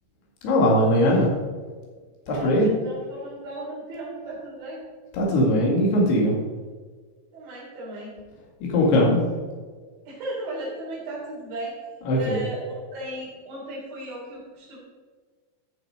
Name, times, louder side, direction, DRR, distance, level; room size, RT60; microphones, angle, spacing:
voice 1, 0.4-1.3 2.3-2.7 5.1-6.4 8.7-9.2 12.0-12.5, left 1 dB, 80° left, -3 dB, 4.5 m, -20 dB
voice 2, 2.3-4.8 7.3-8.1 10.1-11.7 12.1-12.6 12.9-14.8, right 1 dB, 60° right, -7 dB, 5.2 m, -35 dB
13.5 x 7.2 x 5.1 m, 1.4 s
omnidirectional pair, 4.6 m